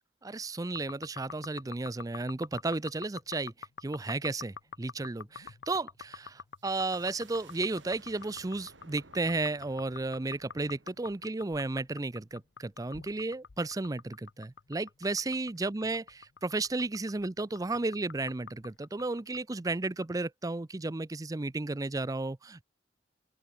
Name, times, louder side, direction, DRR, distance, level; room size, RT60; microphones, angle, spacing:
voice 1, 0.2-3.5 3.8-22.6, right 2 dB, 20° right, 0.5 m, -33 dB
sound 1, 0.7-20.1, left 6 dB, 80° left, 0.8 m, -47 dB
sound 2, 6.6-12.1, right 3 dB, 85° right, 3.6 m, -58 dB
open air
head